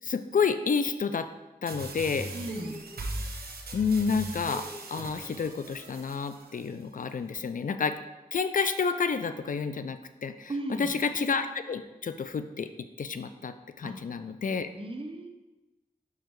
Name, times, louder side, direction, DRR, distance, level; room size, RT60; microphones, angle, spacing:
voice 1, 0.0-1.3 1.6-2.3 3.7-7.9 8.3-10.5 10.8-12.7 13.0-14.7, left 5 dB, 60° left, 10 dB, 0.4 m, -30 dB
sound 1, 1.7-6.7, right 2 dB, 85° right, 1.0 m, -39 dB
voice 2, 2.3-2.8 10.5-10.9 13.8-13.9 14.8-15.3, right 1 dB, 35° right, 4 dB, 0.9 m, -35 dB
5.5 x 4.8 x 4.6 m, 1.1 s
cardioid pair, 50°, 16 cm